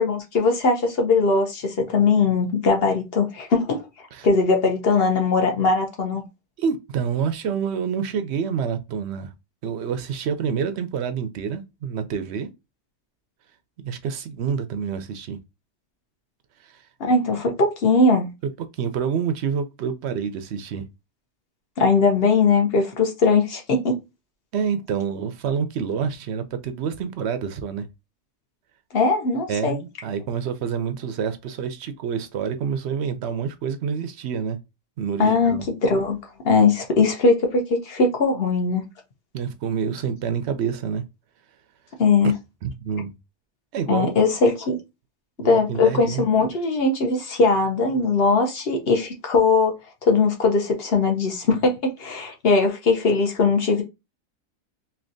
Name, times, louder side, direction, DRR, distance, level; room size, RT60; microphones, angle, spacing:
voice 1, 0.0-3.8 4.2-6.2 17.0-18.3 21.8-24.0 28.9-29.8 35.2-36.2 36.4-38.8 42.0-42.3 43.9-44.8 45.4-49.8 50.0-53.8, left 4 dB, 50° left, 1.0 m, -20 dB
voice 2, 6.6-9.3 9.6-12.5 13.8-15.4 16.6-16.8 18.8-20.8 24.5-27.9 29.5-34.6 35.0-35.7 39.3-41.0 42.6-43.2 43.7-44.2 45.4-46.2, right 7 dB, 65° right, 0.7 m, -27 dB
3.3 x 2.8 x 2.6 m
omnidirectional pair, 1.4 m